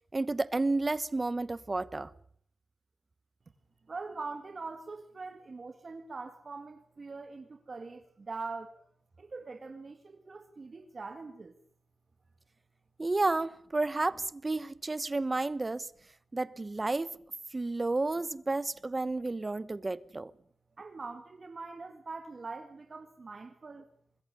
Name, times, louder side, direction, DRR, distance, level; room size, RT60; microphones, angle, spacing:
voice 1, 0.1-2.1 13.0-15.9 16.3-17.1 17.5-20.3, right 2 dB, 25° right, 1.0 m, -31 dB
voice 2, 3.9-8.9 9.2-11.6 20.8-23.9, right 4 dB, 40° right, 1.9 m, -43 dB
25.5 x 21.5 x 6.9 m
wide cardioid pair, 140°, 0 cm